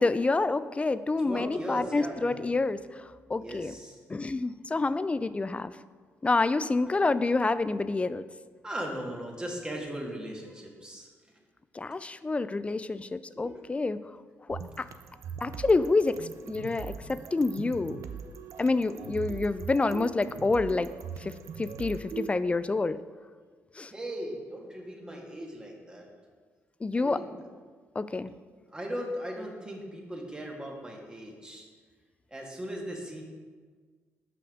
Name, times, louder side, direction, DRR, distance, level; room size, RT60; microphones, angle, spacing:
voice 1, 0.0-3.7 4.1-5.7 6.2-8.2 11.7-14.0 14.5-14.9 15.4-18.0 18.6-20.9 21.2-23.0 23.8-23.9 26.8-27.2 28.0-28.3, left 3 dB, 20° left, 14 dB, 0.3 m, -28 dB
voice 2, 1.2-2.5 3.4-4.0 8.6-11.1 13.3-13.6 16.7-17.4 23.9-26.1 26.9-27.4 28.7-31.7 32.3-33.2, equal, 15° right, 0 dB, 1.6 m, -38 dB
sound 1, 14.5-22.3, right 7 dB, 70° right, 0.5 m, -41 dB
5.7 x 5.2 x 6.2 m, 1.5 s
cardioid pair, 75°, 5 cm